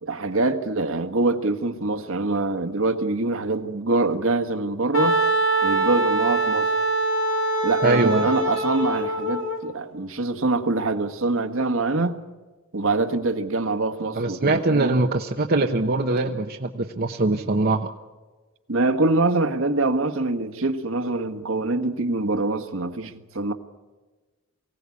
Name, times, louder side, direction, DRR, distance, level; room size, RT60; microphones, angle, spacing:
voice 1, 0.0-5.2 5.6-6.7 7.6-12.2 12.7-14.9 18.7-23.5, right 2 dB, 65° right, 1.6 m, -24 dB
Wind instrument woodwind instrument, 4.9-9.6, right 2 dB, 65° left, 2.6 m, -23 dB
voice 2, 7.8-8.3 14.1-17.9, right 2 dB, 45° right, 1.0 m, -22 dB
24.0 x 17.0 x 8.5 m
head